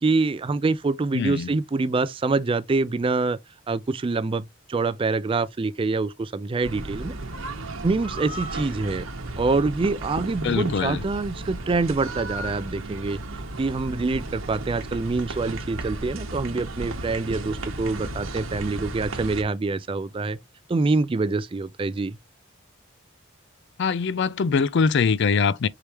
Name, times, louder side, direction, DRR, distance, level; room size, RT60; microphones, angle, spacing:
voice 1, 0.0-3.4 3.7-7.1 7.8-9.1 9.4-13.2 13.6-20.4 20.7-22.2, right 3 dB, 25° right, 0.3 m, -25 dB
voice 2, 1.1-1.5 10.4-11.0 23.8-25.7, left 5 dB, 60° left, 0.4 m, -23 dB
sound 1, 6.6-19.4, right 2 dB, 90° right, 1.1 m, -34 dB
4.8 x 3.4 x 2.9 m
head